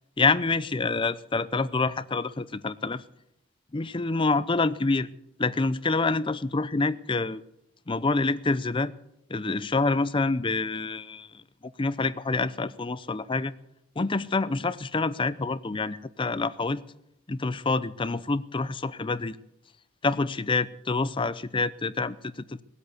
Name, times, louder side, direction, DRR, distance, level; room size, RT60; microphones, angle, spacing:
voice 1, 0.2-3.0 3.7-5.1 5.4-7.4 7.9-8.9 9.3-11.4 11.8-13.5 14.0-16.8 17.3-19.4 20.0-22.6, left 3 dB, 25° left, 15 dB, 0.5 m, -27 dB
18.5 x 8.2 x 8.1 m, 0.84 s
head